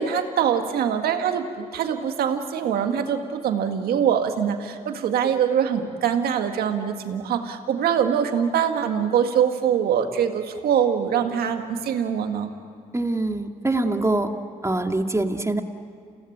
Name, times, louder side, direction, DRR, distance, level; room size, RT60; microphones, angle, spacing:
voice 1, 0.0-12.5, right 8 dB, 80° right, 6 dB, 1.9 m, -23 dB
voice 2, 12.9-14.3 14.6-15.6, right 2 dB, 20° right, 4 dB, 2.3 m, -24 dB
28.5 x 17.5 x 9.2 m, 2.3 s
supercardioid pair, 50°, 16 cm